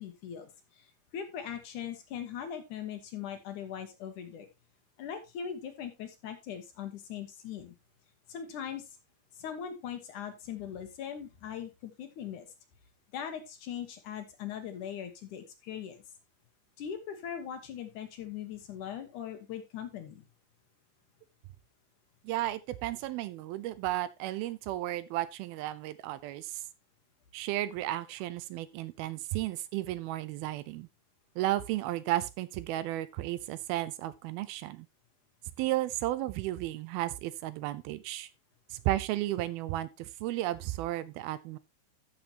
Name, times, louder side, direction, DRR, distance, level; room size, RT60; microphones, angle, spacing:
voice 1, 0.0-4.5 5.0-7.7 8.3-8.9 9.4-12.5 13.1-16.0 16.8-20.3, left 8 dB, 65° left, 2.4 m, -40 dB
voice 2, 22.2-26.6 27.3-30.9 31.4-34.9 35.6-38.3 38.7-41.6, right 15 dB, 85° right, 2.6 m, -33 dB
13.5 x 6.8 x 2.9 m
omnidirectional pair, 4.3 m